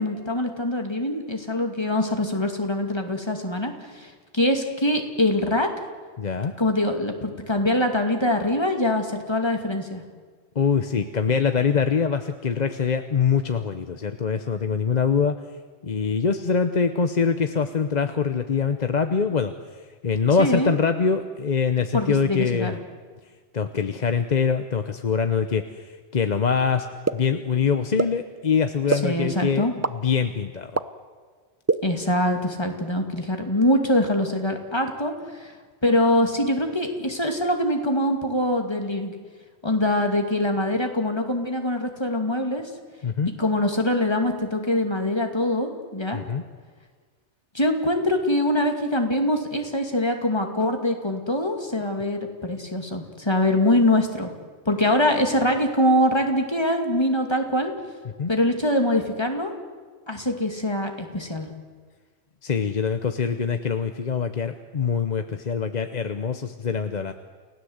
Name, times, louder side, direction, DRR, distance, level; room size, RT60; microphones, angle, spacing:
voice 1, 0.0-5.7 6.6-10.0 20.4-20.7 21.9-22.8 29.0-29.7 31.8-35.5 35.8-39.1 39.6-42.6 43.4-46.2 47.5-54.3 54.7-57.7 58.3-59.5 60.1-61.5, left 1 dB, 20° left, 4 dB, 2.5 m, -23 dB
voice 2, 6.2-6.5 10.6-15.4 15.8-19.5 20.0-22.8 23.5-26.9 27.1-29.7 29.9-30.8 43.0-43.3 46.1-46.4 58.2-58.3 62.4-67.1, left 6 dB, 40° left, 8 dB, 0.9 m, -24 dB
sound 1, 27.1-27.2 28.0-28.1 28.9-29.0 29.8-29.9 30.8-30.9 31.7-31.8, right 3 dB, 20° right, 0.5 m, -20 dB
29.5 x 17.0 x 8.0 m, 1.5 s
omnidirectional pair, 1.2 m